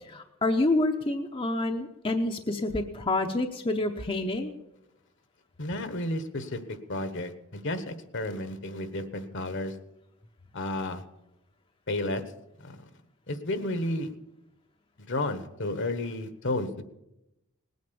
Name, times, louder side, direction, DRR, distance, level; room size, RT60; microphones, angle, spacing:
voice 1, 0.1-4.5, left 2 dB, 25° left, 4 dB, 0.8 m, -28 dB
voice 2, 5.6-9.8 10.5-11.0 11.9-12.2 12.6-12.8 13.3-14.1 15.1-16.8, left 1 dB, 60° left, 10 dB, 1.3 m, -32 dB
19.5 x 9.5 x 7.0 m, 0.90 s
head